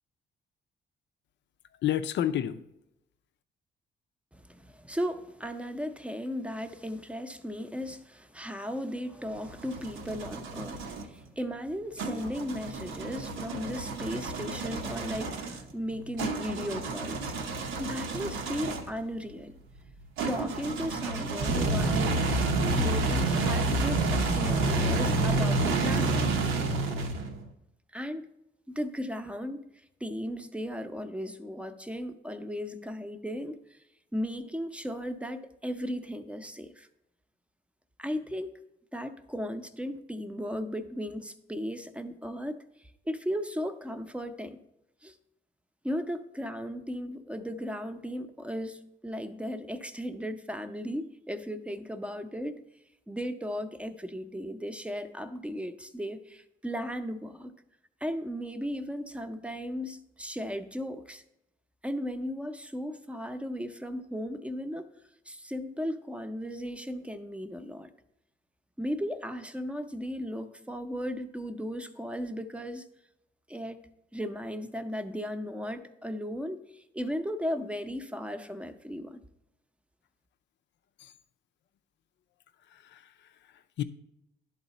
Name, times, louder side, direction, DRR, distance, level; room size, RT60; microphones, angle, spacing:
voice 1, 1.8-2.6 81.0-81.1 82.7-83.8, left 11 dB, 65° left, 12 dB, 0.5 m, -31 dB
voice 2, 4.3-17.3 17.8-19.5 20.3-22.3 22.7-26.3 27.9-28.3 28.7-29.6 30.0-33.8 34.1-36.9 38.0-38.5 38.9-44.6 45.0-45.2 45.8-52.6 53.1-57.5 58.0-61.2 61.8-64.9 65.3-67.9 68.8-72.9 73.5-73.8 74.1-79.2, equal, 5° right, 9 dB, 0.6 m, -36 dB
sound 1, 9.3-11.1 12.0-19.0 20.2-27.5, right 2 dB, 90° right, 0.9 m, -29 dB
11.0 x 4.0 x 4.0 m, 0.84 s
cardioid pair, 90°, 20 cm